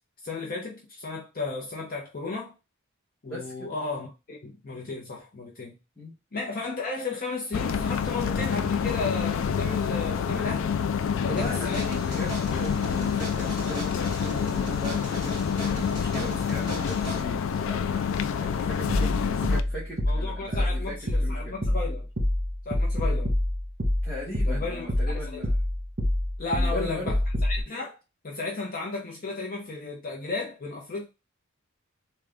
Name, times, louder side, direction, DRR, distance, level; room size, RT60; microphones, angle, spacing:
voice 1, 0.2-2.5 3.2-5.7 6.3-10.7 11.2-12.0 20.1-22.1 22.7-23.3 24.5-25.4 26.4-28.0 28.2-31.0, left 3 dB, 45° left, 0.7 m, -34 dB
voice 2, 3.3-3.7 6.0-6.1 11.3-21.6 24.0-25.6 26.5-27.2, left 1 dB, 5° left, 1.1 m, -39 dB
sound 1, 7.5-19.6, left 7 dB, 65° left, 0.3 m, -27 dB
sound 2, 11.4-17.2, right 2 dB, 20° right, 1.9 m, -39 dB
sound 3, 18.9-27.6, left 1 dB, 40° right, 1.3 m, -26 dB
3.6 x 2.3 x 3.4 m
head